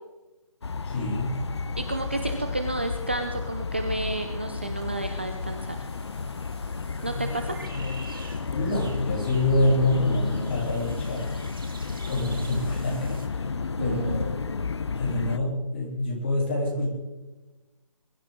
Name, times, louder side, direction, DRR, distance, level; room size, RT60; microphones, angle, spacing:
sound 1, 0.6-15.4, left 4 dB, 50° left, 0.7 m, -32 dB
voice 1, 0.8-1.4 8.5-11.4 12.1-14.6 15.0-16.9, left 1 dB, 20° left, -3 dB, 3.0 m, -27 dB
voice 2, 1.8-5.8 7.0-7.6 13.8-14.2, right 2 dB, 20° right, 5 dB, 0.5 m, -31 dB
sound 2, 4.8-13.3, right 4 dB, 40° right, 2.1 m, -48 dB
22.5 x 12.0 x 3.7 m, 1.1 s
hypercardioid pair, 180°, 18 cm